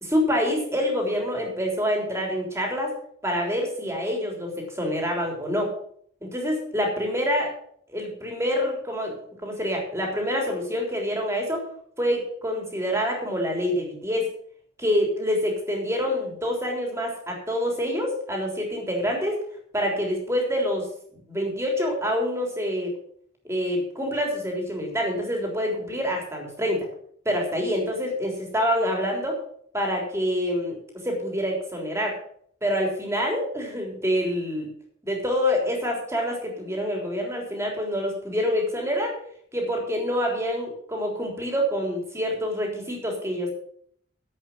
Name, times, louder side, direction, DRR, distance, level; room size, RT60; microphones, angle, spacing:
voice 1, 0.0-2.9 3.2-5.7 6.2-7.5 7.9-9.1 9.4-11.6 12.0-14.3 14.8-19.4 19.7-20.9 21.3-22.9 23.5-26.9 27.3-29.4 29.7-30.8 31.0-32.2 32.6-34.7 35.0-39.2 39.5-43.5, equal, 15° right, 1 dB, 3.6 m, -26 dB
11.0 x 8.3 x 7.3 m, 0.63 s
head